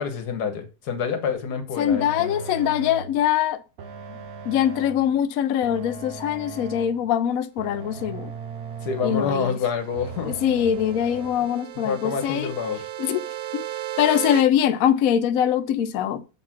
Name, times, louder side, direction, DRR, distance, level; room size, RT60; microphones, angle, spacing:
voice 1, 0.0-2.3 4.1-4.2 8.8-10.4 11.8-12.8, left 6 dB, 55° left, 1.6 m, -27 dB
voice 2, 1.8-3.6 4.5-8.3 9.0-9.6 10.3-12.5 13.0-13.2 13.5-13.7 14.0-16.2, left 10 dB, 85° left, 0.7 m, -23 dB
sound 1, 1.9-3.2 3.8-5.1 5.6-7.1 7.6-9.5 9.9-11.3, right 5 dB, 55° right, 1.3 m, -38 dB
sound 2, 9.5-14.4, right 13 dB, 85° right, 1.4 m, -35 dB
6.5 x 4.0 x 5.9 m
omnidirectional pair, 2.1 m